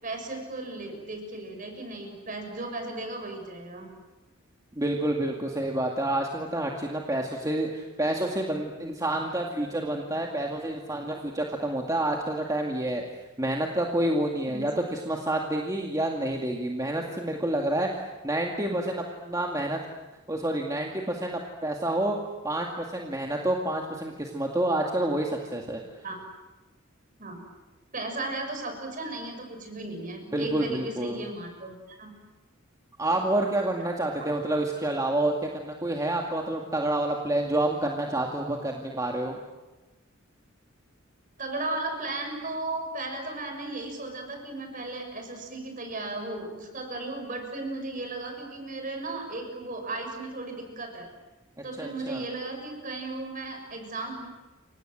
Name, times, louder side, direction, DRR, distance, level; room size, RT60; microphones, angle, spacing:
voice 1, 0.0-3.9 14.5-14.6 26.0-26.2 27.2-27.4 27.9-32.1 34.2-34.3 41.4-51.1 51.6-54.3, right 2 dB, 40° right, 5 dB, 6.4 m, -35 dB
voice 2, 4.8-13.0 13.4-17.9 18.2-19.8 20.3-22.2 22.4-25.8 30.3-31.2 33.0-39.4 51.8-52.2, right 1 dB, 20° right, 0 dB, 2.2 m, -28 dB
30.0 x 25.0 x 7.7 m, 1.1 s
head